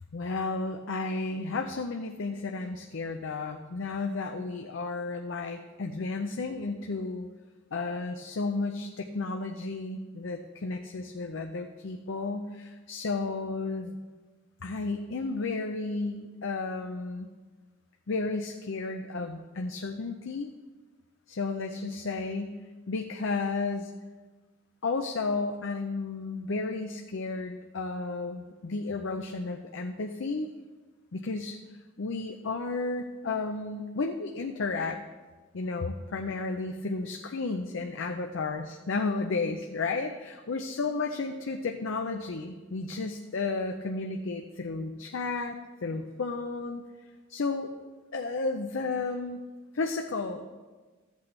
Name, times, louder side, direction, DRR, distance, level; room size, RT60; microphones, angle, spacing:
voice 1, 0.1-7.3 7.7-14.0 14.6-17.3 18.1-20.5 21.3-22.6 22.9-23.9 24.8-30.5 31.1-31.6 32.0-35.0 35.5-46.8 47.3-47.7 48.1-49.4 49.7-50.4, left 3 dB, 65° left, 4 dB, 0.6 m, -33 dB
14.0 x 8.2 x 3.2 m, 1.3 s
head